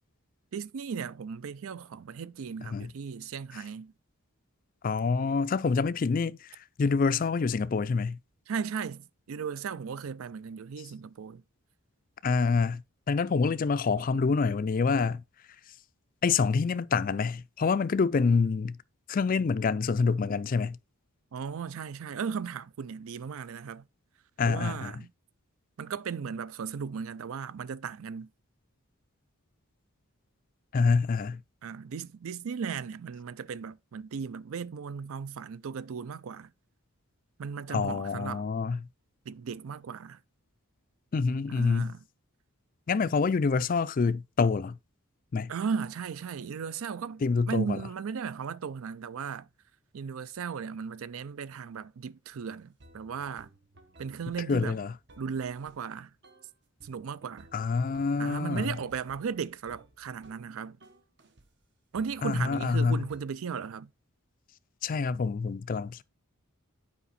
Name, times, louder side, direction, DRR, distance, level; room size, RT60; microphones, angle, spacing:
voice 1, 0.5-3.9 8.5-11.4 21.3-23.9 24.4-25.1 25.8-28.3 31.6-36.5 37.4-38.5 39.3-40.2 41.5-42.0 45.5-49.5 49.9-53.5 54.0-54.8 55.2-56.1 56.8-57.5 58.2-60.8 61.9-63.9, right 6 dB, 70° right, 0.4 m, -36 dB
voice 2, 4.8-8.2 12.2-12.8 13.1-15.2 16.2-18.8 19.1-20.8 24.4-24.9 30.7-31.4 37.7-38.8 41.1-41.9 42.9-44.8 45.3-45.5 47.2-47.8 54.5-54.9 57.5-58.7 62.2-63.0 64.8-66.0, left 4 dB, 40° left, 0.3 m, -26 dB
sound 1, 52.3-52.4 52.8-55.9 56.2-56.5 56.8-60.5 60.8-61.5 61.9-63.2, right 1 dB, 50° right, 0.9 m, -57 dB
8.3 x 5.0 x 4.1 m
head